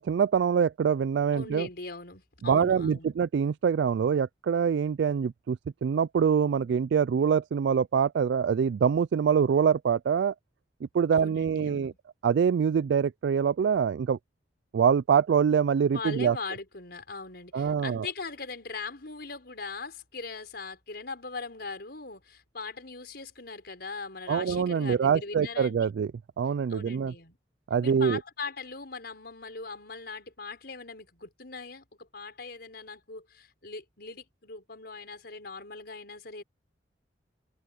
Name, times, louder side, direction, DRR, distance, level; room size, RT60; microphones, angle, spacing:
voice 1, 0.0-1.7 2.4-10.3 10.9-11.9 12.2-14.2 14.7-16.4 17.5-18.1 24.3-26.1 26.4-27.1 27.7-28.2, right 7 dB, 70° right, 0.3 m, -25 dB
voice 2, 1.3-3.1 11.1-12.0 15.9-25.9 26.7-27.4 27.8-36.4, left 4 dB, 60° left, 5.7 m, -40 dB
head